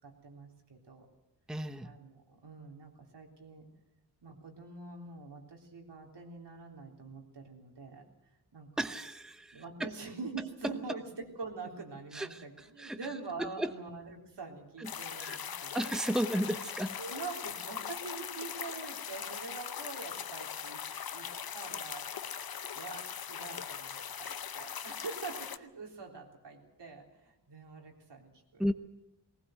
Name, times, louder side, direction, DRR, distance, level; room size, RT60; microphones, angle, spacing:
voice 1, 0.0-1.1 1.8-3.7 4.2-8.1 8.5-8.7 9.5-16.0 17.0-20.8 21.1-21.3 21.5-22.3 22.7-28.7, right 4 dB, 80° right, 1 dB, 3.6 m, -45 dB
voice 2, 1.5-1.9 8.8-9.9 12.1-12.4 12.8-13.0 13.4-13.7 14.8-14.9 15.2-15.4 15.7-17.0 28.6-28.7, equal, ahead, 9 dB, 0.9 m, -34 dB
sound 1, 14.8-25.6, left 8 dB, 60° left, 0.8 m, -40 dB
19.5 x 18.5 x 7.8 m, 0.91 s
wide cardioid pair, 110°, 41 cm